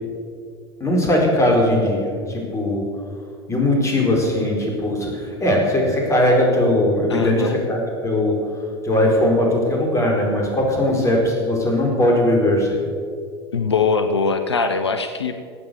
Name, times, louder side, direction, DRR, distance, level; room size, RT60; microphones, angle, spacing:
voice 1, 0.8-2.8 3.5-8.3 8.8-12.7, left 1 dB, 20° left, 0 dB, 4.4 m, -19 dB
voice 2, 7.1-7.6 13.5-15.4, left 5 dB, 85° left, 8 dB, 0.7 m, -21 dB
15.0 x 8.8 x 6.9 m, 2.2 s
figure-of-eight pair, 75°, 14 cm